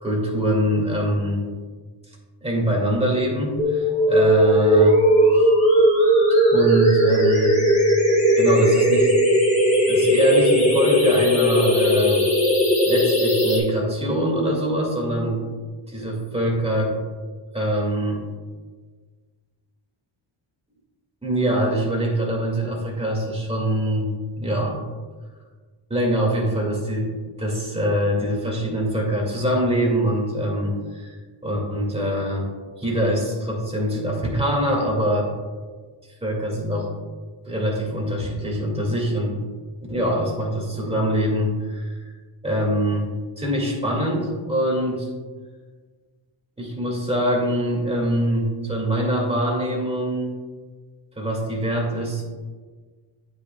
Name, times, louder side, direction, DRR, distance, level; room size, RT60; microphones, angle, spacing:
voice 1, 0.0-1.4 2.4-5.0 5.3-5.5 6.5-7.6 8.4-9.2 9.9-12.2 12.8-15.5 15.9-16.9 17.5-18.2 21.2-24.8 25.9-27.1 27.4-31.2 31.4-32.5 32.8-35.3 36.2-36.9 37.5-39.4 39.9-42.0 42.4-43.1 43.4-45.1 46.6-50.4 51.2-52.2, right 1 dB, 10° right, -2 dB, 2.1 m, -23 dB
sound 1, 3.6-13.6, equal, 15° left, 1.8 m, -17 dB
9.7 x 8.2 x 2.3 m, 1.5 s
wide cardioid pair, 135°, 50 cm